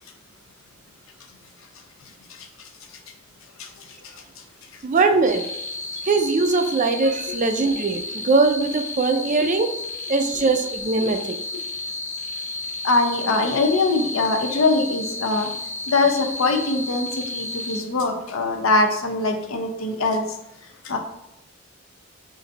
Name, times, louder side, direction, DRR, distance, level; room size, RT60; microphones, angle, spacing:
voice 1, 4.8-5.4 6.1-9.7 10.1-11.3, right 3 dB, 40° right, 6 dB, 0.4 m, -21 dB
sound 1, 5.3-17.8, left 3 dB, 35° left, 1.0 m, -32 dB
voice 2, 12.8-15.5 15.9-20.2 20.8-21.0, left 3 dB, 85° left, 4 dB, 0.7 m, -22 dB
3.8 x 2.7 x 4.0 m, 0.86 s
head